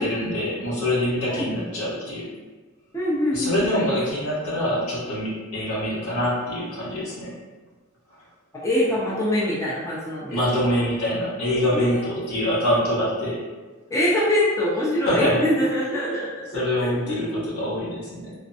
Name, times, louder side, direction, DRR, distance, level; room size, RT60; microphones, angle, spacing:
voice 1, 0.0-2.3 3.3-7.3 10.3-13.4 15.0-15.4 16.5-18.3, left 1 dB, 85° left, -7 dB, 1.1 m, -25 dB
voice 2, 2.9-3.9 8.6-10.7 11.7-12.1 13.9-17.6, left 1 dB, 15° left, -7 dB, 0.5 m, -24 dB
3.3 x 2.1 x 2.7 m, 1.3 s
head